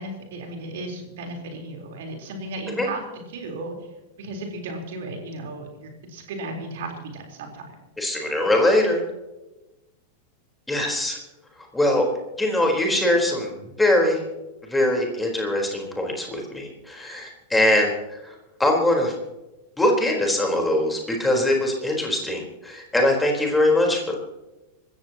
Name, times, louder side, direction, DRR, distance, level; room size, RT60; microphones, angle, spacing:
voice 1, 0.0-3.8 4.2-7.8, right 2 dB, 55° right, 2 dB, 4.0 m, -35 dB
voice 2, 8.0-9.0 10.7-11.2 11.7-12.1 12.4-14.2 14.7-17.9 18.6-19.1 19.8-24.2, left 1 dB, 5° left, 1 dB, 4.2 m, -22 dB
26.0 x 14.5 x 3.0 m, 1.0 s
figure-of-eight pair, 90°, 0 cm